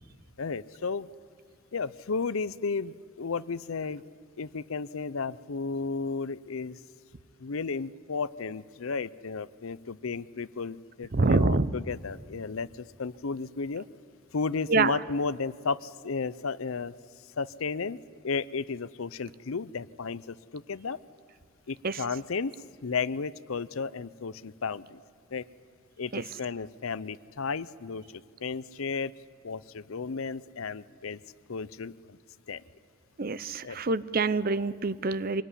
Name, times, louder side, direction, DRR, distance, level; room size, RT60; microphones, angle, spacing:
voice 1, 0.4-1.1 1.7-4.0 4.4-6.8 7.4-13.9 14.3-16.9 17.4-21.0 21.7-22.5 22.8-25.0 25.3-25.5 26.0-29.1 29.4-31.2 31.5-32.2 32.5-32.6 33.6-33.8, left 4 dB, 70° left, 18 dB, 0.6 m, -33 dB
voice 2, 11.1-11.7 14.7-15.0 21.8-22.0 26.1-26.2 33.2-35.4, right 3 dB, 40° right, 16 dB, 0.6 m, -26 dB
25.0 x 19.5 x 9.8 m, 2.3 s
head